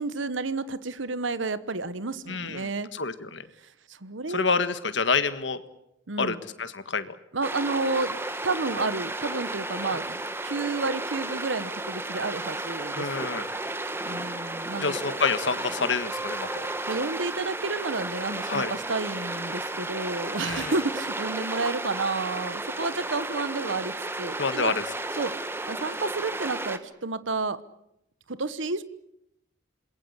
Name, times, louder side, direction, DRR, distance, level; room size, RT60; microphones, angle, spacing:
voice 1, 0.0-2.9 3.6-4.7 6.1-6.4 7.3-8.2 8.4-13.3 14.0-15.0 16.9-24.7 25.2-25.3 25.7-27.6 28.3-28.8, right 3 dB, 75° right, 15 dB, 1.1 m, -31 dB
voice 2, 2.3-3.4 4.3-5.6 6.2-7.1 13.0-13.5 14.8-16.5 18.5-18.7 20.4-20.7 24.4-24.8, left 4 dB, 65° left, 11 dB, 1.7 m, -28 dB
sound 1, 7.4-26.8, right 2 dB, 10° right, 1.5 m, -33 dB
27.5 x 21.5 x 8.3 m, 0.83 s
head